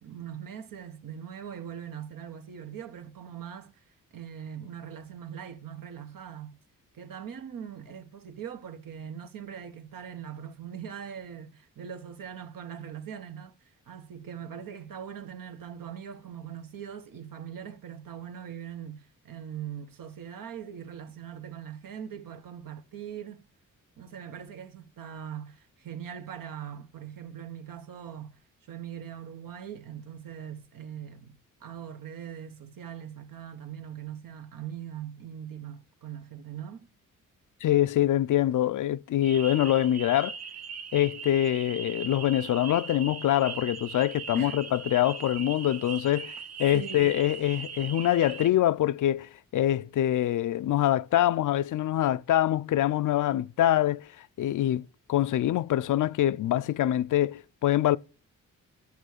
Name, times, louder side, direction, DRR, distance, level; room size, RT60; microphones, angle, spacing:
voice 1, 0.0-3.8 4.1-6.6 6.9-13.5 13.9-23.5 24.0-36.9 44.3-44.6 46.7-47.1, right 8 dB, 85° right, 1.2 m, -41 dB
voice 2, 37.6-40.4 40.9-46.3 46.6-54.8 55.1-58.0, left 12 dB, 70° left, 0.4 m, -25 dB
sound 1, 39.2-48.5, right 6 dB, 50° right, 0.7 m, -40 dB
11.0 x 7.0 x 6.5 m
cardioid pair, 105°, 33 cm